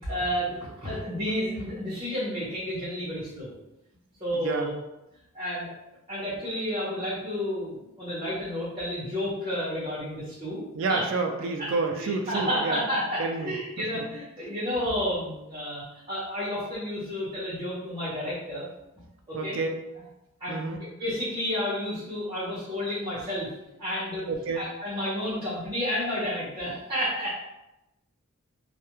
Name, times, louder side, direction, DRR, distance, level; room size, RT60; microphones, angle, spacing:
voice 1, 0.1-3.5 4.2-4.7 5.3-5.7 6.1-10.6 10.9-11.0 11.6-11.7 12.0-18.6 19.3-19.6 20.4-23.5 23.8-24.3 24.6-27.3, equal, 20° right, -9 dB, 0.8 m, -31 dB
voice 2, 4.3-4.7 10.7-12.8 13.2-14.0 19.3-19.7 20.5-20.8 24.3-24.7, right 3 dB, 60° right, 3 dB, 0.3 m, -29 dB
2.3 x 2.1 x 2.9 m, 0.93 s
head